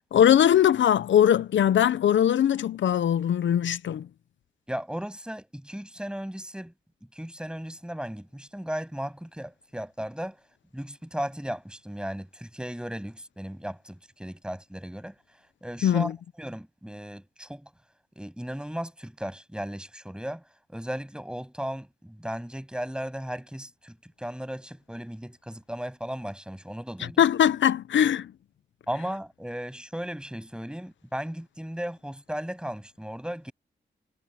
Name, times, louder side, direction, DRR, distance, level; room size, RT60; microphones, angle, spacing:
voice 1, 0.1-4.1 15.8-16.1 27.0-28.3, left 10 dB, 75° left, 0.7 m, -21 dB
voice 2, 4.7-6.7 7.1-10.4 10.7-15.1 15.6-16.1 16.4-17.7 18.2-20.4 20.7-27.2 28.9-33.5, equal, 5° right, 7.8 m, -36 dB
cardioid pair, 60°, 19 cm